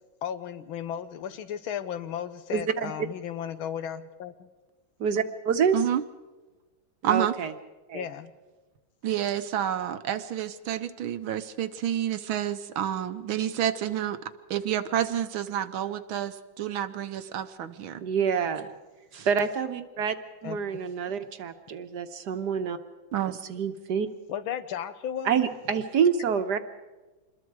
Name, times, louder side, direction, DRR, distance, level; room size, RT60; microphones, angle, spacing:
voice 1, 0.2-4.5 7.9-8.3 20.4-20.8 24.3-25.3, left 9 dB, 80° left, 11 dB, 1.8 m, -35 dB
voice 2, 2.5-2.9 5.0-5.8 7.0-7.5 7.9-8.0 18.0-18.7 19.1-20.1 20.4-22.8 23.5-24.1 25.2-26.6, right 7 dB, 60° right, 9 dB, 1.5 m, -27 dB
voice 3, 7.0-7.4 9.0-14.2 14.5-18.0 23.1-23.3, right 10 dB, 80° right, 10 dB, 1.7 m, -29 dB
26.5 x 21.5 x 4.7 m, 1.2 s
omnidirectional pair, 2.2 m